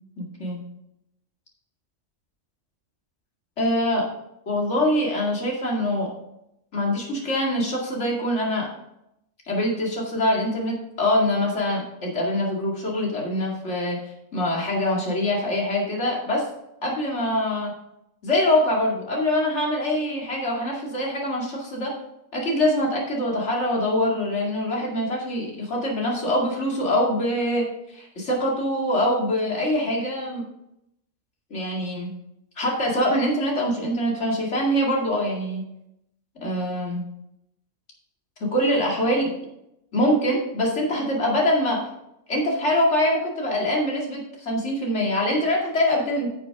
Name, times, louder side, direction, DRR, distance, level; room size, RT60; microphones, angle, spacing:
voice 1, 0.2-0.6 3.6-4.1 4.5-6.1 6.7-8.7 9.5-14.0 14.3-16.5 16.8-17.7 18.2-22.0 22.3-30.4 31.5-32.1 32.6-35.7 36.4-37.0 38.4-39.3 39.9-41.9 42.3-46.3, left 1 dB, 60° left, -2 dB, 2.6 m, -24 dB
10.5 x 6.9 x 3.6 m, 0.82 s
omnidirectional pair, 1.4 m